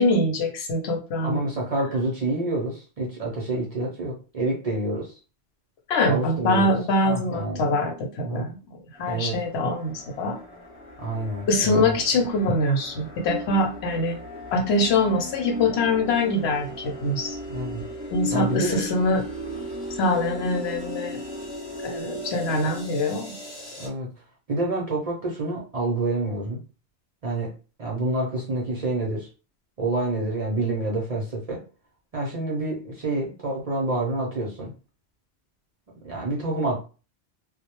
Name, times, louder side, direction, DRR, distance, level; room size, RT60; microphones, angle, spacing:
voice 1, 0.0-1.4 5.9-10.4 11.5-14.2 14.5-17.4 18.1-19.2 20.0-21.2 21.8-23.3, left 2 dB, 75° left, 3 dB, 0.9 m, -24 dB
voice 2, 1.2-5.1 6.1-6.8 7.0-7.6 8.2-8.6 9.1-9.4 11.0-12.0 17.5-17.8 18.3-18.8 23.8-24.1 24.5-26.6 27.2-27.5 27.8-29.3 29.8-31.6 32.1-34.7 36.0-36.8, right 2 dB, 50° right, -3 dB, 0.5 m, -28 dB
sound 1, 8.9-23.9, left 1 dB, 30° left, 0.8 m, -36 dB
2.1 x 2.0 x 2.9 m, 0.35 s
omnidirectional pair, 1.1 m